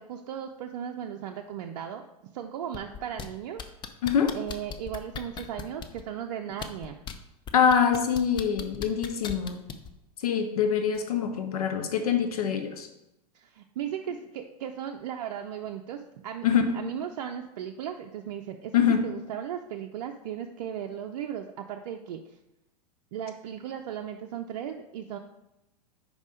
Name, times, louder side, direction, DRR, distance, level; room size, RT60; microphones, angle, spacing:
voice 1, 0.0-2.1 2.3-3.6 4.3-7.0 13.3-18.7 19.0-22.2 23.1-25.2, right 9 dB, 55° right, 3 dB, 0.5 m, -36 dB
sound 1, 2.7-3.3 3.6-6.0 6.5-7.1 7.5-9.9 10.9-11.0, left 7 dB, 20° left, 0.6 m, -37 dB
voice 2, 4.0-4.4 7.5-9.6 10.2-12.9 16.4-16.9 18.7-19.1, left 7 dB, 65° left, 6 dB, 0.7 m, -24 dB
5.3 x 5.0 x 5.1 m, 0.91 s
figure-of-eight pair, 95°, 21 cm